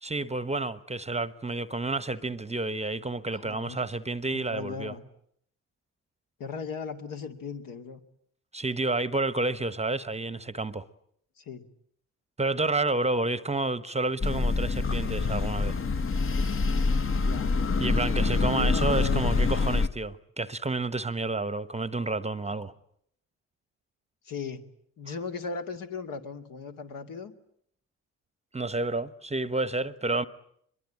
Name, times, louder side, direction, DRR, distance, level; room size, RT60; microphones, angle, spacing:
voice 1, 0.0-4.9 8.5-10.8 12.4-15.7 17.8-22.7 28.5-30.3, right 2 dB, 15° right, 1.1 m, -30 dB
voice 2, 3.4-3.8 4.3-5.0 6.4-8.0 11.4-11.7 17.1-17.5 18.5-19.8 24.2-24.7 25.0-27.3, left 5 dB, 55° left, 2.5 m, -37 dB
sound 1, 14.2-19.9, left 4 dB, 30° left, 1.4 m, -26 dB
25.0 x 22.5 x 10.0 m
figure-of-eight pair, 45°, 39 cm